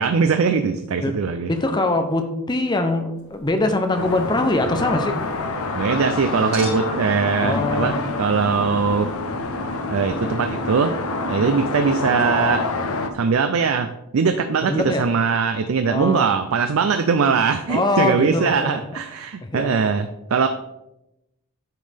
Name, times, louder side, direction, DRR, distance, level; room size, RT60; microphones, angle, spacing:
voice 1, 0.0-1.5 5.7-9.1 9.9-10.9 11.3-12.7 13.1-20.5, right 5 dB, 75° right, 8 dB, 0.4 m, -21 dB
voice 2, 1.5-5.2 7.4-8.0 14.7-15.0 15.9-16.3 17.7-18.8 19.4-19.8, left 2 dB, 20° left, 6 dB, 0.6 m, -23 dB
Car, 3.1-10.4, right 1 dB, 5° left, 2.9 m, -46 dB
Chink clink, 3.1-6.1 6.5-11.9 12.2-12.3, right 1 dB, 50° right, 2.8 m, -44 dB
sound 1, 3.9-13.1, left 3 dB, 90° left, 0.7 m, -27 dB
9.2 x 5.3 x 3.4 m, 0.90 s
head